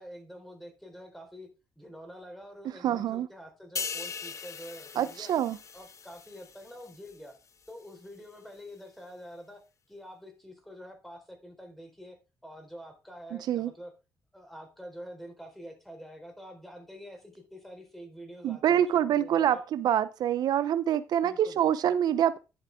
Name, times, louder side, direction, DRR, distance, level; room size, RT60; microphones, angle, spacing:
voice 1, 0.0-1.5 1.8-5.4 5.7-7.4 7.7-9.6 9.9-13.9 14.3-19.6 21.2-21.6, equal, 5° left, 4.1 m, -47 dB
voice 2, 2.8-3.3 5.0-5.6 13.5-13.7 18.4-22.4, right 10 dB, 75° right, 0.5 m, -26 dB
sound 1, 3.8-7.3 7.7-7.9, left 6 dB, 45° left, 0.9 m, -40 dB
11.0 x 7.2 x 3.5 m
cardioid pair, 85°, 7 cm